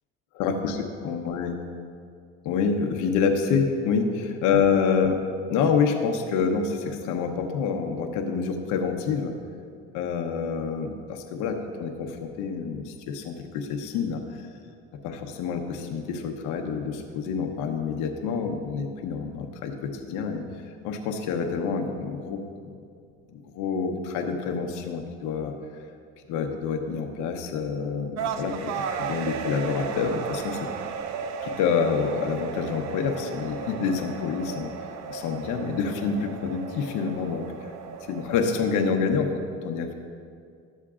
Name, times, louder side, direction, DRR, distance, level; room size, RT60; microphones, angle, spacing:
voice 1, 0.4-1.6 2.4-9.4 9.9-14.5 15.0-20.4 20.8-22.4 23.3-25.5 26.3-30.7 31.4-34.7 35.1-37.7 38.1-39.9, left 5 dB, 70° left, 3 dB, 1.0 m, -27 dB
sound 1, 28.2-38.9, right 6 dB, 55° right, 0.6 m, -35 dB
12.0 x 7.3 x 2.5 m, 2.2 s
cardioid pair, 115°, 32 cm